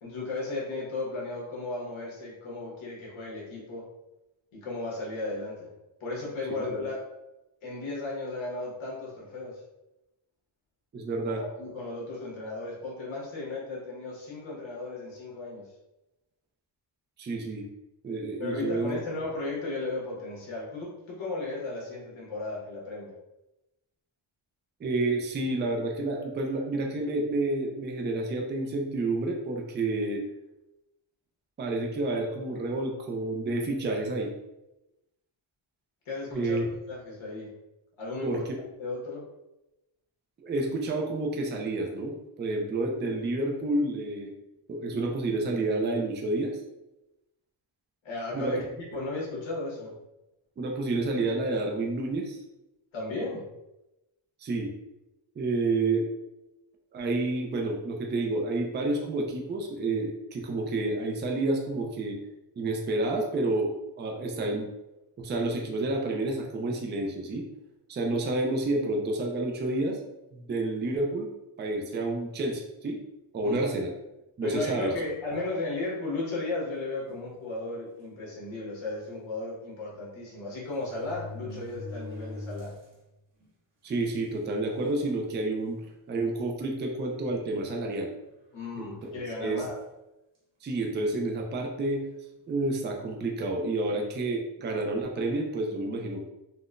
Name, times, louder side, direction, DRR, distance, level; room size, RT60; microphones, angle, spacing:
voice 1, 0.0-3.8 4.5-5.7 6.0-7.0 7.6-9.6 11.6-15.7 18.4-23.1 36.0-36.6 36.9-37.5 38.0-38.4 38.8-39.2 48.0-48.6 48.9-49.9 52.9-53.5 73.4-73.6 74.4-82.7 88.5-89.8, left 2 dB, 70° left, -4 dB, 1.2 m, -35 dB
voice 2, 6.5-6.9 10.9-11.4 17.2-17.7 18.0-19.0 24.8-30.2 31.6-34.3 36.3-36.7 38.2-38.4 40.4-44.3 44.7-46.6 48.3-48.5 50.6-52.4 54.4-54.7 55.4-56.1 56.9-62.2 62.6-64.7 65.2-67.4 67.9-70.0 70.3-71.3 71.6-73.0 73.3-73.9 74.4-74.9 75.3-75.4 83.8-85.8 86.1-88.1 88.8-88.9 89.4-89.6 90.6-92.0 92.5-96.3, right 2 dB, 25° right, 1 dB, 0.3 m, -29 dB
sound 1, 77.1-77.3 78.1-78.2 78.5-78.6 79.9-80.0 80.7-83.0 83.4-83.5 84.3-84.4 84.8-85.2 85.8-85.9 87.2-88.0 89.0-89.3, left 2 dB, 60° right, 1.1 m, -43 dB
3.8 x 2.1 x 2.4 m, 0.95 s
wide cardioid pair, 140°, 49 cm